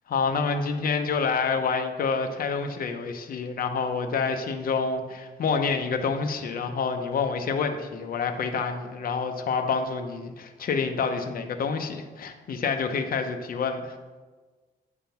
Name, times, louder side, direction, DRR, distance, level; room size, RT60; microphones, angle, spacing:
voice 1, 0.1-13.9, left 5 dB, 65° left, 5 dB, 0.8 m, -28 dB
8.9 x 3.7 x 5.8 m, 1.3 s
cardioid pair, 105°, 16 cm